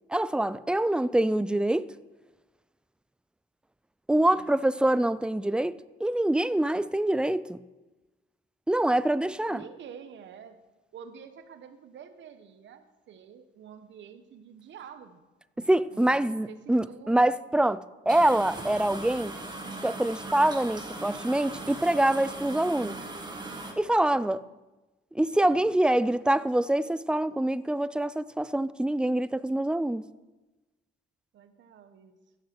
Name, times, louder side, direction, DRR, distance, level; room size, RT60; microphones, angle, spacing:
voice 1, 0.1-1.9 4.1-7.6 8.7-9.6 15.7-19.4 19.8-23.0 23.8-24.4 25.1-30.1, right 1 dB, 5° right, 0.4 m, -25 dB
voice 2, 4.3-4.6 9.5-10.6 10.9-15.2 15.6-17.3 23.9-24.5 31.3-32.2, right 7 dB, 70° right, 1.1 m, -48 dB
sound 1, 18.1-23.7, right 2 dB, 20° right, 2.0 m, -39 dB
15.5 x 6.7 x 6.0 m
cardioid pair, 90°, 20 cm